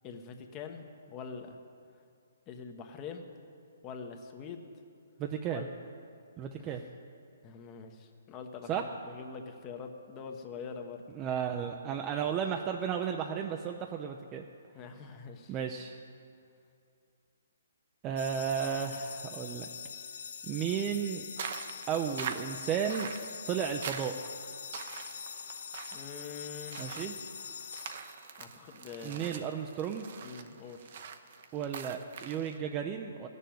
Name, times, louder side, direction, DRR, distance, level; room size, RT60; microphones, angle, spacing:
voice 1, 0.0-1.6 2.5-3.3 3.8-4.6 5.5-5.7 6.6-6.7 7.4-11.0 14.7-15.5 25.9-27.0 28.4-29.3 30.2-30.9, left 5 dB, 25° left, 5 dB, 1.1 m, -44 dB
voice 2, 5.2-5.7 6.4-6.8 8.7-8.8 11.1-14.4 15.5-16.0 18.0-19.7 20.5-21.2 21.9-23.1 23.5-24.2 26.8-27.1 29.0-30.1 31.5-33.3, right 8 dB, 25° right, 3 dB, 0.6 m, -33 dB
sound 1, 18.2-28.6, left 7 dB, 60° left, 0.6 m, -44 dB
sound 2, 21.4-32.6, right 7 dB, 55° right, 0.8 m, -44 dB
14.0 x 6.8 x 9.3 m, 2.5 s
hypercardioid pair, 145°, 0 cm